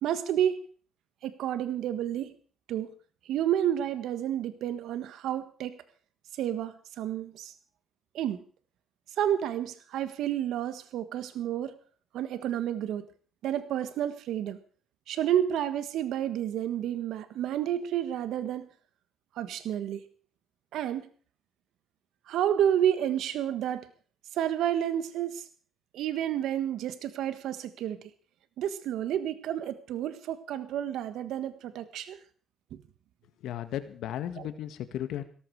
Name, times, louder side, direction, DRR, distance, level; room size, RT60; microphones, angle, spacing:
voice 1, 0.0-0.6 1.2-2.3 2.7-2.9 3.2-5.8 6.4-7.5 8.1-8.4 9.2-11.8 12.1-13.0 13.4-14.6 15.1-18.7 19.3-20.1 20.7-21.1 22.3-23.9 24.3-25.5 25.9-28.1 28.6-32.2 32.7-32.8 34.4-34.5, right 10 dB, 80° right, 12 dB, 1.5 m, -30 dB
voice 2, 33.4-35.2, left 11 dB, 85° left, 11 dB, 1.9 m, -35 dB
17.5 x 14.0 x 4.8 m, 0.42 s
cardioid pair, 90°, 0 cm